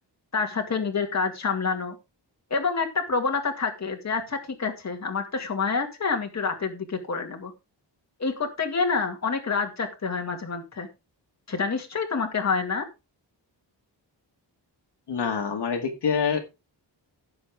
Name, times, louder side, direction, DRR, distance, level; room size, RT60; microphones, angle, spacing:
voice 1, 0.3-2.0 2.5-7.5 8.2-10.9 11.5-12.9, left 5 dB, 40° left, 3 dB, 2.1 m, -27 dB
voice 2, 15.1-16.4, left 6 dB, 65° left, 4 dB, 2.0 m, -26 dB
16.5 x 7.0 x 3.5 m, 0.26 s
wide cardioid pair, 175°, 43 cm